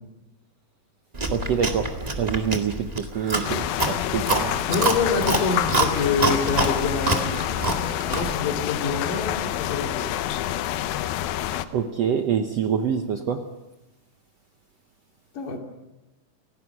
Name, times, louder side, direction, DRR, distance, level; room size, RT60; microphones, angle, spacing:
Chewing mastication, 1.1-8.4, right 2 dB, 20° right, 1.0 m, -26 dB
voice 1, 1.3-4.6 11.7-13.5, right 7 dB, 65° right, 5 dB, 1.6 m, -26 dB
sound 1, 3.4-11.7, left 12 dB, 85° left, 2.7 m, -28 dB
voice 2, 4.7-7.7 8.0-10.1 15.3-15.6, left 4 dB, 65° left, 2 dB, 4.2 m, -26 dB
29.5 x 16.5 x 6.1 m, 0.98 s
omnidirectional pair, 4.1 m